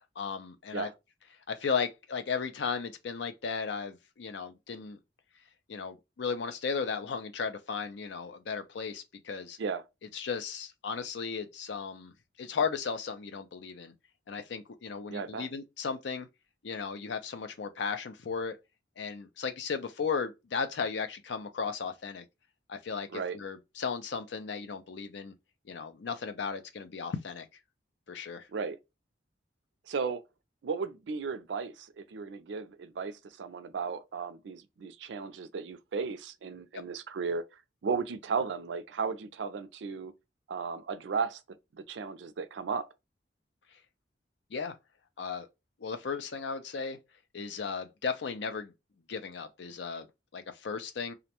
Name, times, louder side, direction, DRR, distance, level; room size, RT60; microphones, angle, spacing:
voice 1, 0.2-0.9 1.5-5.0 5.7-9.6 10.1-13.9 14.3-16.3 16.6-18.6 19.0-22.2 22.7-25.3 25.7-27.5 28.1-28.5 44.5-44.7 45.2-45.5 45.8-47.0 47.3-48.7 49.1-50.1 50.3-51.1, left 5 dB, 70° left, 0.4 m, -35 dB
voice 2, 15.1-15.5 23.1-23.4 28.5-28.8 29.9-30.2 30.6-37.4 37.8-40.1 40.5-41.4 41.7-42.9, right 5 dB, 75° right, 0.4 m, -35 dB
2.4 x 2.1 x 2.8 m
head